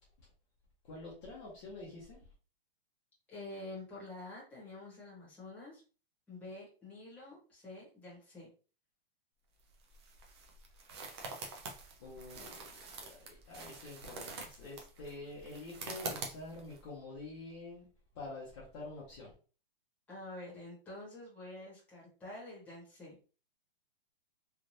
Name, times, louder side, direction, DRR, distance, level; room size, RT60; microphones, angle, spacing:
voice 1, 0.8-2.2 12.0-17.9 18.1-19.3, left 2 dB, 30° left, 0.8 m, -47 dB
voice 2, 3.3-5.8 6.3-8.5 20.1-23.1, left 2 dB, 5° left, 1.1 m, -48 dB
sound 1, 9.6-16.8, right 3 dB, 30° right, 0.5 m, -46 dB
3.3 x 2.4 x 2.6 m
hypercardioid pair, 165°, 29 cm